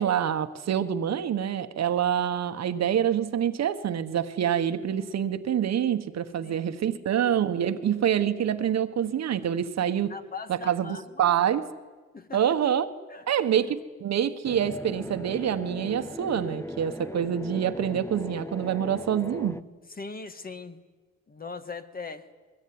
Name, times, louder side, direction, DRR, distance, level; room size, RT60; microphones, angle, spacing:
voice 1, 0.0-10.1 10.5-11.7 12.3-12.9 13.3-19.6, right 9 dB, 60° right, 10 dB, 1.4 m, -26 dB
voice 2, 6.4-6.7 10.1-11.2 12.1-12.4 13.1-13.2 20.0-20.8 21.3-22.3, left 4 dB, 30° left, 9 dB, 1.7 m, -40 dB
sound 1, 14.4-19.6, left 1 dB, 10° left, 0.8 m, -38 dB
22.5 x 21.5 x 9.6 m, 1.4 s
cardioid pair, 90°, 30 cm